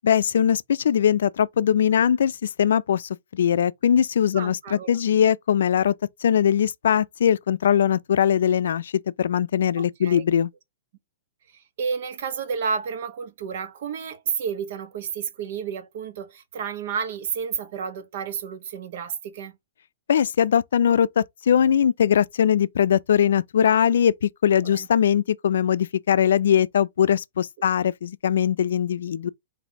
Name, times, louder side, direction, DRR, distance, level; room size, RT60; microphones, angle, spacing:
voice 1, 0.0-5.9 6.2-8.9 9.2-10.5 20.1-29.3, left 9 dB, 80° left, 0.3 m, -21 dB
voice 2, 4.3-5.0 9.8-10.2 11.5-19.5 24.6-24.9 27.6-27.7, right 6 dB, 60° right, 1.0 m, -31 dB
4.0 x 2.6 x 4.5 m
hypercardioid pair, 155°, 0 cm